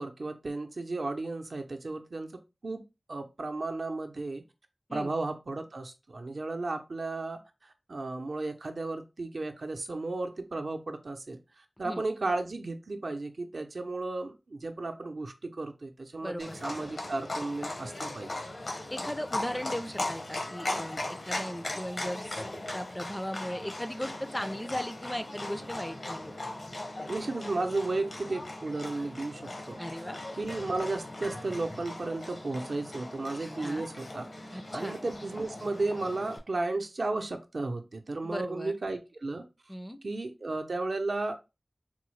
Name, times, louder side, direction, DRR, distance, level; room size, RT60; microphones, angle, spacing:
voice 1, 0.0-2.3 2.6-2.8 3.1-4.4 4.9-11.4 11.8-18.4 27.1-29.4 29.7-29.8 30.4-34.3 34.7-39.4 40.0-41.5, right 2 dB, 70° right, 0.5 m, -34 dB
voice 2, 16.2-16.6 18.9-22.4 22.7-26.3 29.8-30.2 33.6-33.9 34.5-34.9 38.2-38.7 39.7-40.0, equal, 10° left, 0.3 m, -37 dB
Livestock farm animals working animals, 16.4-36.4, left 1 dB, 70° left, 0.8 m, -38 dB
3.7 x 2.0 x 3.1 m
wide cardioid pair, 70°, 0 cm